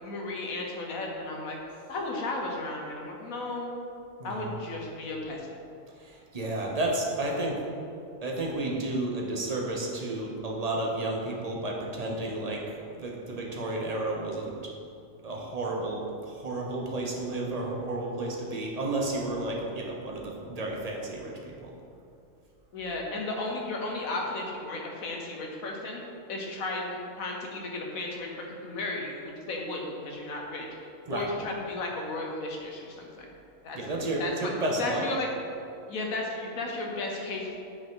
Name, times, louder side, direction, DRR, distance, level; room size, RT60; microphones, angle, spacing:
voice 1, 0.0-1.6 1.9-3.7 4.2-5.6 22.7-26.0 26.3-30.7 31.1-33.3 33.6-33.8 34.2-34.5 34.7-35.3 35.9-37.6, left 2 dB, 80° left, 0 dB, 1.5 m, -34 dB
voice 2, 4.2-4.6 6.0-7.6 8.2-12.6 13.0-14.5 15.2-21.7 31.1-31.3 33.7-35.0, right 2 dB, 30° right, -2 dB, 1.0 m, -32 dB
8.6 x 4.9 x 3.9 m, 2.6 s
omnidirectional pair, 1.4 m